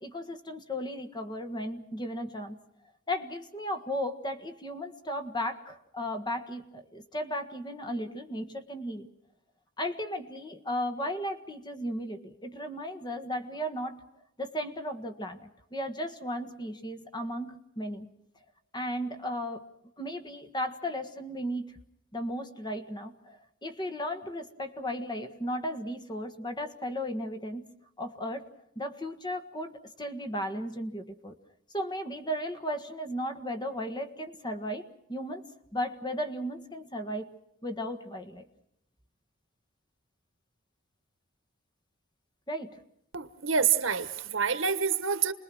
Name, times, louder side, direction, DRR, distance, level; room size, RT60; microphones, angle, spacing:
voice 1, 0.0-2.6 3.1-9.1 9.8-14.0 14.4-18.1 18.7-19.7 20.0-21.8 22.1-27.7 28.0-28.5 28.7-31.4 31.7-37.3 37.6-38.4 42.5-42.8, equal, 20° left, 6 dB, 1.6 m, -35 dB
voice 2, 43.1-45.3, right 7 dB, 60° right, 11 dB, 1.5 m, -27 dB
29.0 x 21.0 x 6.2 m, 0.77 s
head